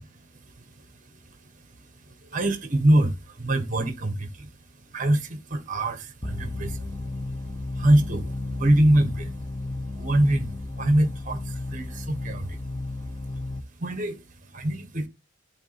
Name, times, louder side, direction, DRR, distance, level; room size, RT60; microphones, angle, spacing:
voice 1, 0.3-15.1, right 1 dB, 40° right, 1.5 m, -26 dB
sound 1, 6.2-13.6, left 2 dB, 20° left, 0.8 m, -33 dB
12.0 x 4.0 x 4.3 m
head